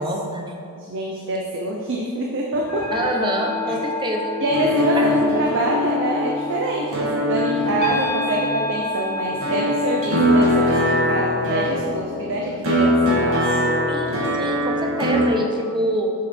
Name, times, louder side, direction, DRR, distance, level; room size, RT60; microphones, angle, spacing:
voice 1, 0.0-0.6 2.9-4.4 4.9-5.0 13.9-16.1, right 1 dB, 20° right, 1 dB, 0.9 m, -25 dB
voice 2, 0.7-2.9 4.4-13.8, right 1 dB, 60° right, 0 dB, 0.7 m, -25 dB
sound 1, 2.4-10.2, left 2 dB, 70° left, 2.1 m, -30 dB
sound 2, 4.5-15.3, equal, 80° right, 1.9 m, -22 dB
7.2 x 6.5 x 4.5 m, 2.3 s
head